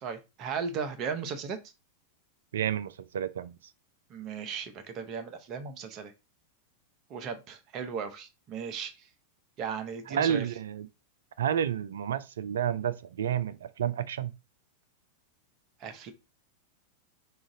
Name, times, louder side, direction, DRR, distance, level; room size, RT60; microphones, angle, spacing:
voice 1, 0.0-1.6 4.1-6.1 7.1-8.9 9.6-10.5 15.8-16.1, right 6 dB, 35° right, 0.7 m, -36 dB
voice 2, 2.5-3.5 10.1-10.9 11.4-14.3, right 9 dB, 65° right, 0.3 m, -30 dB
4.9 x 2.5 x 3.8 m
figure-of-eight pair, 90°, 0 cm